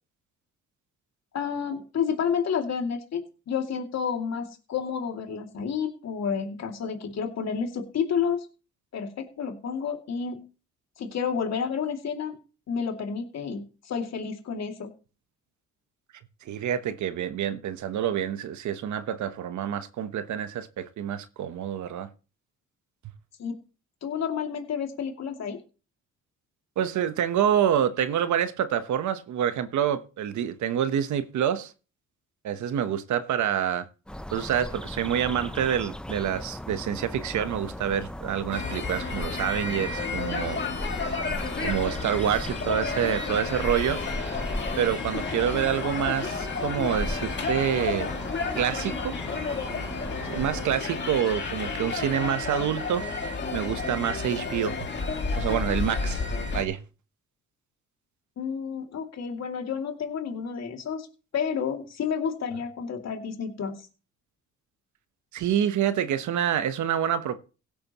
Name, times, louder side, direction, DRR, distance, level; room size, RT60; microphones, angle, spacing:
voice 1, 1.3-8.5 8.9-10.4 11.0-12.4 12.7-14.9 23.4-23.5 24.0-25.6 58.4-61.1 61.3-63.8, left 6 dB, 60° left, 2.6 m, -30 dB
voice 2, 16.5-22.1 26.8-31.7 32.4-33.8 34.3-40.6 41.6-44.0 44.8-48.1 48.6-49.2 50.3-53.1 53.5-54.9 55.4-56.2 56.5-56.8 65.3-67.4, right 9 dB, 70° right, 1.1 m, -27 dB
sound 1, 34.1-50.7, left 1 dB, 5° left, 0.6 m, -37 dB
sound 2, 38.5-56.6, left 4 dB, 35° left, 2.4 m, -31 dB
16.5 x 8.6 x 3.0 m
cardioid pair, 90°, 30 cm